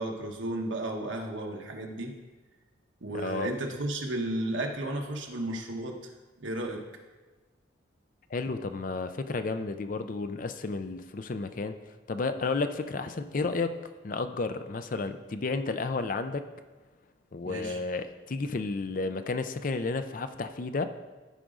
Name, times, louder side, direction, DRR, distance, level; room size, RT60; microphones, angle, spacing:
voice 1, 0.0-2.1 3.0-6.1 6.4-6.9 17.4-17.8, right 1 dB, 75° right, 2 dB, 1.2 m, -33 dB
voice 2, 3.1-3.5 8.3-11.8 12.1-13.8 14.0-16.4 17.3-20.9, left 3 dB, 45° left, 9 dB, 0.5 m, -32 dB
14.0 x 5.1 x 3.8 m, 1.3 s
head